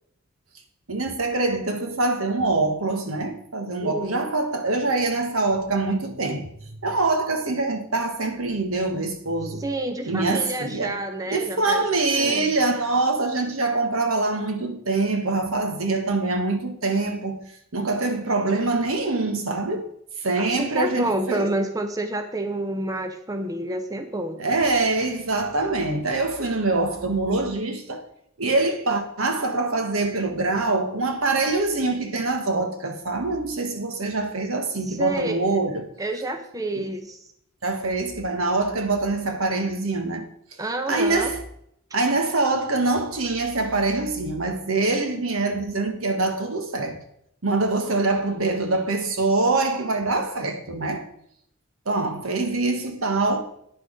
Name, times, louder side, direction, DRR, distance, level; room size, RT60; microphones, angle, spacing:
voice 1, 0.9-6.5 6.8-9.6 10.0-11.0 11.3-17.4 17.7-19.9 20.2-21.5 24.4-28.1 28.4-35.9 36.7-36.8 37.6-40.3 40.9-41.4 41.9-47.0 47.4-51.1 51.8-53.4, right 3 dB, 80° right, 1.4 m, -24 dB
voice 2, 3.8-4.2 9.6-11.9 12.1-12.5 20.4-24.4 34.8-35.6 36.0-37.2 40.6-41.3, right 1 dB, 15° right, 0.7 m, -29 dB
9.4 x 6.3 x 5.1 m
head